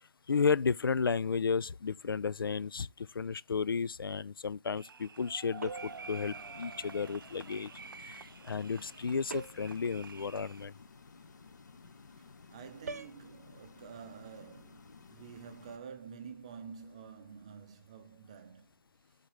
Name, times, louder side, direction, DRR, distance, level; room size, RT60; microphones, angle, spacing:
voice 1, 0.3-7.7 8.0-10.7, left 5 dB, 75° left, 0.4 m, -33 dB
sound 1, 4.8-10.6, right 5 dB, 75° right, 0.5 m, -49 dB
sound 2, 5.6-6.1 9.3-9.8 12.9-13.2, right 4 dB, 45° right, 0.8 m, -42 dB
sound 3, 5.8-15.8, left 4 dB, 55° left, 1.0 m, -55 dB
voice 2, 12.5-18.7, right 6 dB, 15° right, 0.6 m, -49 dB
11.5 x 4.1 x 3.1 m
hypercardioid pair, 170°, 12 cm